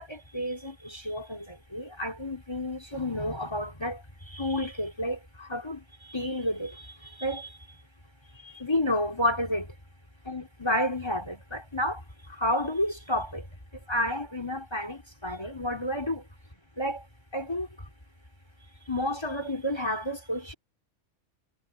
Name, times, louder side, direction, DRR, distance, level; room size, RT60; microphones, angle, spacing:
voice 1, 0.0-4.0 4.3-5.8 6.1-6.9 7.2-7.5 8.4-9.7 10.3-12.0 12.4-13.4 13.9-16.2 16.8-17.0 17.3-17.7 18.9-20.5, left 1 dB, 20° left, 3.0 m, -30 dB
omnidirectional pair, 1.5 m